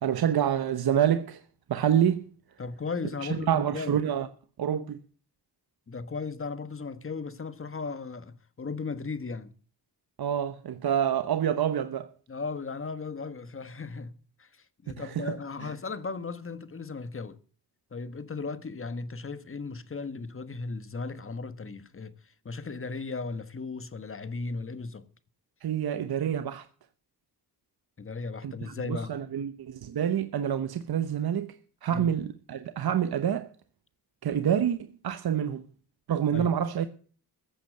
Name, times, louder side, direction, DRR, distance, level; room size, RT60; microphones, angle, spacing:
voice 1, 0.0-1.4 1.7-2.2 3.2-4.3 4.6-5.0 10.2-12.1 15.0-15.7 25.6-26.7 28.4-33.5 34.2-35.7 36.1-36.9, right 9 dB, 65° right, 1.0 m, -27 dB
voice 2, 2.6-4.0 5.9-9.5 12.3-17.4 17.9-22.1 22.4-25.1 28.0-29.1 31.9-32.1 36.3-36.5, left 4 dB, 30° left, 1.4 m, -36 dB
15.0 x 8.5 x 6.6 m
cardioid pair, 90°, 40 cm